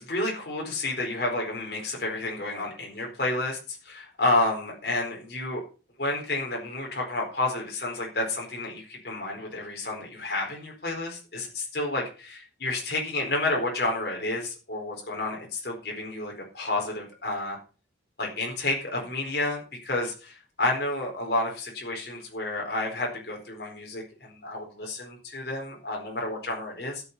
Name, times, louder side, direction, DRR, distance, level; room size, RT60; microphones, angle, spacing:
voice 1, 0.0-5.6 6.0-17.6 18.2-27.0, left 2 dB, 60° left, -1 dB, 4.4 m, -30 dB
13.5 x 7.3 x 5.5 m, 0.34 s
head